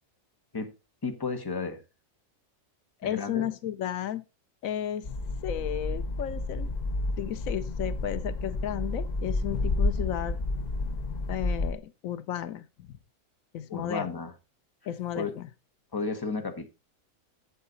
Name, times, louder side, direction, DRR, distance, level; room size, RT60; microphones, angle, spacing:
voice 1, 1.0-1.8 3.0-3.5 13.7-14.3 15.1-15.3 15.9-16.7, left 4 dB, 15° left, 1.2 m, -33 dB
voice 2, 3.0-4.2 4.6-5.1 5.4-6.7 7.2-10.4 11.3-13.0 13.5-14.1 14.9-15.5, left 10 dB, 85° left, 1.1 m, -33 dB
sound 1, 5.0-11.7, left 2 dB, 50° left, 0.5 m, -30 dB
8.1 x 7.6 x 3.9 m
omnidirectional pair, 1.4 m